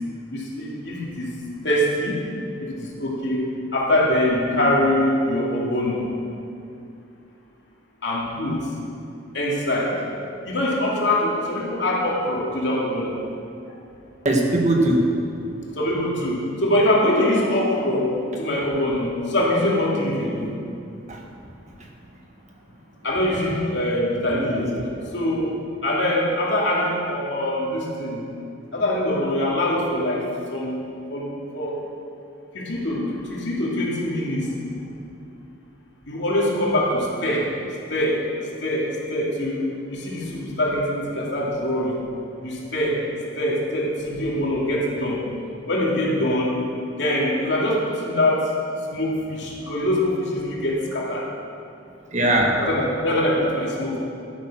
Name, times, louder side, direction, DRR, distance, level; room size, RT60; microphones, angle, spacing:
voice 1, 0.3-1.3 1.6-2.2 2.6-3.5 3.7-6.0 8.0-8.7 9.3-10.0 10.4-13.1 15.7-20.5 23.0-24.7 25.1-28.2 28.7-30.2 30.5-30.8 31.1-31.8 32.5-34.5 36.1-37.5 37.9-38.2 38.6-42.0 42.4-43.0 43.4-45.2 45.7-46.5 46.9-48.5 48.9-51.2 52.6-54.0, left 1 dB, 60° left, -4 dB, 2.7 m, -23 dB
voice 2, 14.2-15.1 21.1-21.2 24.3-24.8 52.1-52.6, right 1 dB, 35° right, 1 dB, 1.5 m, -20 dB
12.0 x 9.5 x 6.2 m, 2.6 s
head